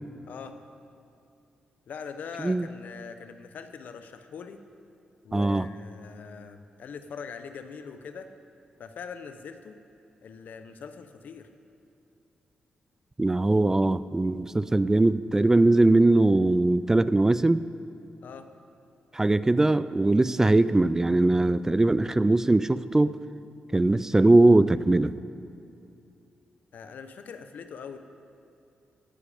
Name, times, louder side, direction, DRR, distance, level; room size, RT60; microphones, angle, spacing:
voice 1, 1.9-4.6 5.2-8.3 8.8-9.8 10.2-11.5 18.2-18.5 26.7-28.0, left 6 dB, 75° left, 9 dB, 0.9 m, -42 dB
voice 2, 5.3-5.7 13.2-17.6 19.1-23.1 23.7-25.1, right 2 dB, 15° right, 15 dB, 0.3 m, -21 dB
17.0 x 10.5 x 5.1 m, 2.6 s
cardioid pair, 95°, 3 cm